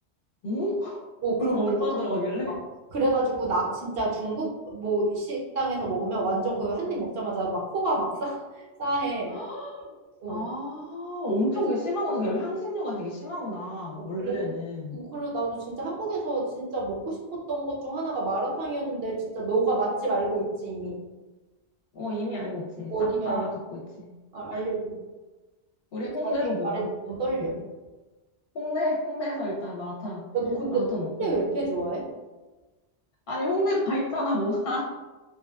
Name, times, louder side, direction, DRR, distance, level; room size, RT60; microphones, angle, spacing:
voice 1, 0.4-1.0 1.4-2.5 9.3-9.9 10.3-15.0 21.9-22.9 23.3-24.1 24.5-24.6 25.9-26.9 28.5-30.2 30.7-31.4 33.3-34.9, left 1 dB, 60° left, -3 dB, 0.7 m, -29 dB
voice 2, 1.2-1.6 1.9-2.0 2.4-2.6 2.9-9.3 10.2-10.4 14.0-14.5 14.9-21.0 22.9-23.4 24.3-25.0 26.6-27.6 30.3-32.0, right 2 dB, 65° right, -3 dB, 0.9 m, -28 dB
2.9 x 2.3 x 2.2 m, 1.2 s
omnidirectional pair, 1.1 m